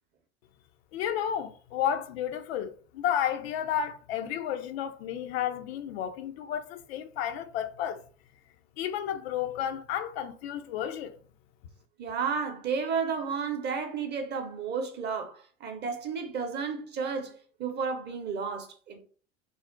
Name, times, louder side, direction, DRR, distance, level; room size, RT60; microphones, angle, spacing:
voice 1, 0.9-8.1 8.8-11.1, left 9 dB, 60° left, 0.4 m, -32 dB
voice 2, 12.0-17.3 17.6-19.0, right 5 dB, 30° right, 0.7 m, -32 dB
2.4 x 2.0 x 3.7 m
hypercardioid pair, 85°, 36 cm